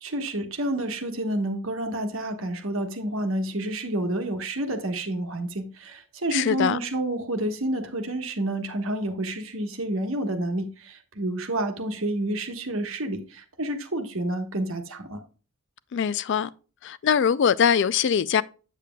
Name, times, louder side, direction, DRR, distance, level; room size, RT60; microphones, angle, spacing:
voice 1, 0.0-15.2, right 1 dB, 60° right, 1.2 m, -29 dB
voice 2, 6.3-6.8 15.9-16.5 16.8-18.4, left 7 dB, 50° left, 0.3 m, -22 dB
8.2 x 7.5 x 2.3 m
head